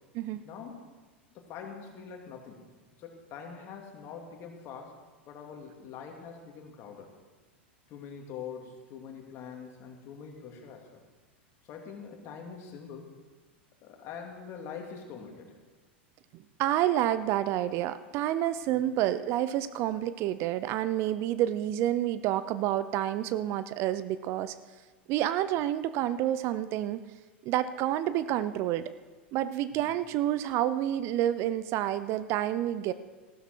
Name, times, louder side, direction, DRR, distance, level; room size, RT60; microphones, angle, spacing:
voice 1, 0.4-0.8 1.3-2.6 3.0-5.0 5.3-7.1 7.9-11.0 11.6-13.1 13.8-15.6 18.7-18.9 29.8-29.9, left 6 dB, 45° left, 2 dB, 2.7 m, -44 dB
voice 2, 16.3-24.6 25.1-27.0 27.4-28.9 29.3-32.9, right 12 dB, 45° right, 14 dB, 0.6 m, -29 dB
15.0 x 12.5 x 4.6 m, 1.3 s
hypercardioid pair, 90°, 6 cm